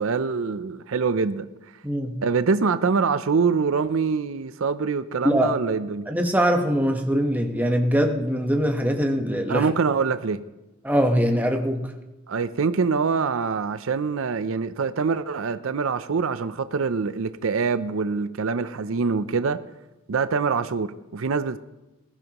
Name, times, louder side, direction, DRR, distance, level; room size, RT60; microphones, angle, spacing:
voice 1, 0.0-1.5 2.2-6.0 9.5-10.4 12.3-19.6 20.1-21.6, right 5 dB, 65° right, 0.5 m, -24 dB
voice 2, 1.8-2.2 5.2-5.5 6.1-9.7 10.8-11.9, equal, 10° right, 1.1 m, -22 dB
20.5 x 14.5 x 3.0 m
head